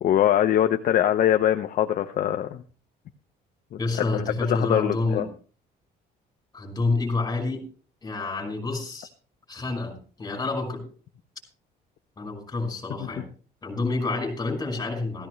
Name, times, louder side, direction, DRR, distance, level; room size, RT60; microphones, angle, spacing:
voice 1, 0.0-2.6 3.9-4.2 4.5-5.3, left 11 dB, 50° left, 7 dB, 0.8 m, -22 dB
voice 2, 3.8-5.2 6.5-7.6 8.0-9.1 9.5-10.8 12.2-13.3 13.6-15.3, left 3 dB, 20° left, 2 dB, 5.3 m, -28 dB
16.5 x 14.5 x 3.2 m, 0.40 s
cardioid pair, 140°, 17 cm